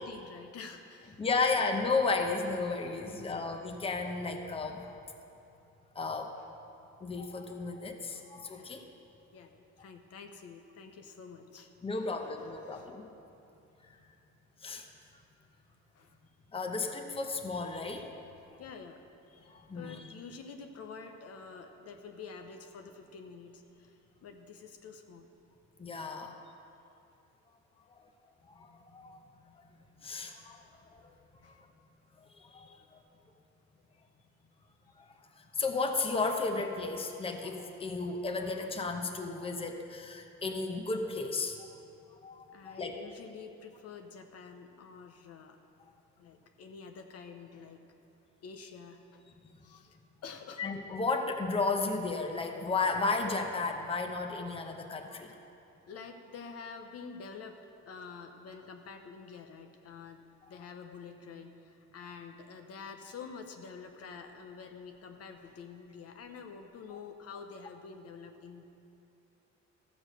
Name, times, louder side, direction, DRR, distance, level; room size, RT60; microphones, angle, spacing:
voice 1, 0.0-1.2 3.1-3.4 8.5-8.8 9.3-11.7 12.6-12.9 15.9-16.2 18.6-25.3 31.4-31.7 42.5-45.6 46.2-47.8 48.4-49.2 49.6-50.7 55.9-60.2 60.5-68.8, left 5 dB, 55° left, 5 dB, 0.8 m, -48 dB
voice 2, 1.2-5.0 5.9-6.3 7.0-8.8 11.8-13.0 14.6-14.9 16.5-18.1 19.5-20.0 25.8-26.4 27.9-28.0 28.5-29.2 30.0-31.1 31.4-31.6 32.2-33.0 35.4-41.7 42.2-43.0 49.7-49.8 50.6-55.3, left 3 dB, 20° left, 4 dB, 0.8 m, -34 dB
13.5 x 7.1 x 6.4 m, 2.7 s
cardioid pair, 130°, 30 cm